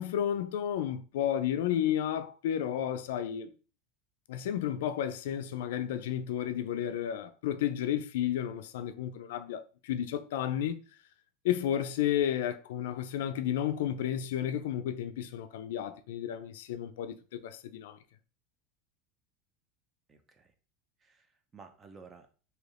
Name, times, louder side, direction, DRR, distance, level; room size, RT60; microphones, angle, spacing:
voice 1, 0.0-3.5 4.3-10.8 11.4-18.0, left 10 dB, 85° left, 0.3 m, -32 dB
voice 2, 20.1-20.5 21.0-22.3, right 5 dB, 20° right, 0.5 m, -54 dB
3.3 x 2.7 x 2.5 m
supercardioid pair, 140°, 0 cm